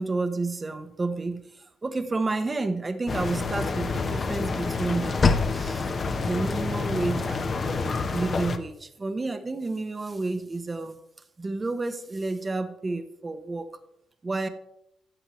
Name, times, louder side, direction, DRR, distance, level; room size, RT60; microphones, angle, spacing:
voice 1, 0.0-11.0 11.4-13.7 14.2-14.5, right 3 dB, 25° right, 9 dB, 0.9 m, -30 dB
sound 1, 3.1-8.6, left 4 dB, 40° left, 0.8 m, -27 dB
12.5 x 7.9 x 3.1 m, 0.79 s
cardioid pair, 90°, 0 cm